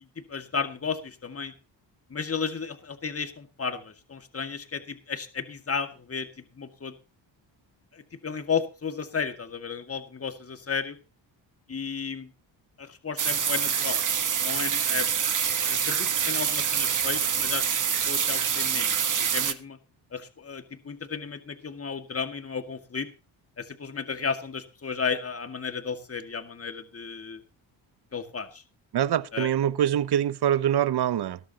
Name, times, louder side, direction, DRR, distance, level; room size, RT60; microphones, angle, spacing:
voice 1, 0.3-1.5 2.1-6.3 6.6-6.9 7.9-11.0 11.7-12.3 12.8-14.0 14.4-15.1 15.6-17.7 18.1-19.8 20.1-23.1 23.6-27.4 28.1-28.6 29.3-29.5, left 5 dB, 30° left, 2.1 m, -33 dB
sound 1, 13.2-19.5, right 7 dB, 40° right, 1.4 m, -26 dB
voice 2, 28.9-31.4, right 10 dB, 60° right, 0.9 m, -24 dB
18.0 x 13.0 x 2.9 m
cardioid pair, 85°, 45 cm